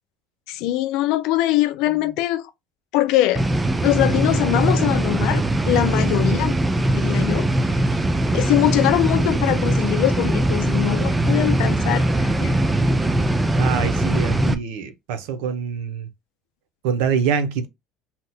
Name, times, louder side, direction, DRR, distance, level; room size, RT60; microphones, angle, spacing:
voice 1, 0.5-2.5 2.9-3.4 3.8-6.5 6.9-7.5 8.3-12.5, left 15 dB, 75° left, 0.3 m, -22 dB
sound 1, 3.4-14.5, right 1 dB, 15° right, 0.4 m, -21 dB
voice 2, 13.6-16.1 16.8-17.7, right 7 dB, 85° right, 0.6 m, -25 dB
2.8 x 2.1 x 4.0 m
supercardioid pair, 110°, 0 cm